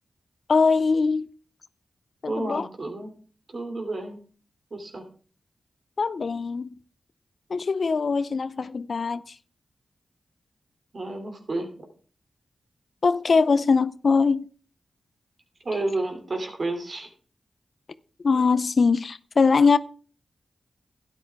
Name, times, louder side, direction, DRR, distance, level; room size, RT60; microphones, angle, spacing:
voice 1, 0.5-1.3 2.2-2.7 6.0-6.7 7.5-9.3 13.0-14.5 18.2-19.8, left 4 dB, 60° left, 0.5 m, -22 dB
voice 2, 2.3-3.1 3.5-4.2 4.7-5.0 10.9-11.7 15.6-17.1, right 2 dB, 55° right, 2.8 m, -30 dB
12.0 x 9.6 x 3.6 m
cardioid pair, 50°, 0 cm